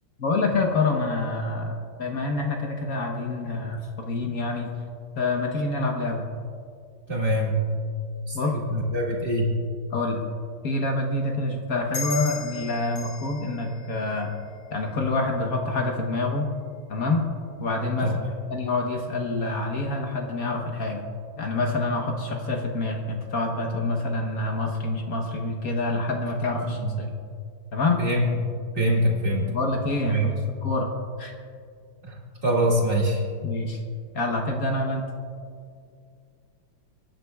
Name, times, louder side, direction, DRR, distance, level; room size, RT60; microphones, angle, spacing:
voice 1, 0.2-4.7 5.2-6.3 8.3-8.5 9.9-10.2 10.6-14.3 14.7-16.5 16.9-17.3 17.6-18.2 18.5-21.1 21.4-27.1 27.7-28.0 29.5-30.3 30.6-30.9 31.2-31.3 33.4-33.8 34.1-35.1, left 2 dB, 50° left, 2 dB, 1.1 m, -27 dB
voice 2, 7.1-7.6 8.3-9.5 18.0-18.1 26.6-26.9 28.0-28.5 28.7-29.5 30.1-30.3 32.1-32.2 32.4-33.2, equal, 25° right, -2 dB, 1.6 m, -24 dB
sound 1, 11.9-15.0, left 6 dB, 85° left, 2.8 m, -37 dB
23.5 x 10.5 x 2.3 m, 2.3 s
omnidirectional pair, 2.4 m